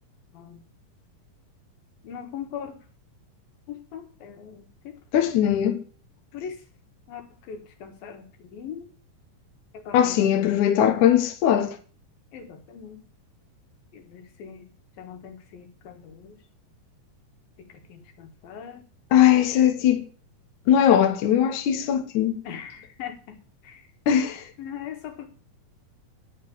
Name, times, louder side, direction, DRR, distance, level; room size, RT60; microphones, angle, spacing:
voice 1, 2.1-2.7 3.9-4.5 6.3-6.5 7.1-7.2 7.5-7.6 8.0-8.2 8.5-8.8 9.9-10.0 12.3-12.4 12.7-13.0 14.4-14.6 15.0-15.3 15.9-16.0 18.5-18.8 22.5-22.7 23.0-23.1 24.6-25.3, left 8 dB, 90° left, 3.5 m, -37 dB
voice 2, 5.1-5.8 9.9-11.8 19.1-20.1 20.7-22.3 24.1-24.4, left 10 dB, 70° left, 2.3 m, -20 dB
9.4 x 6.5 x 7.0 m
omnidirectional pair, 4.0 m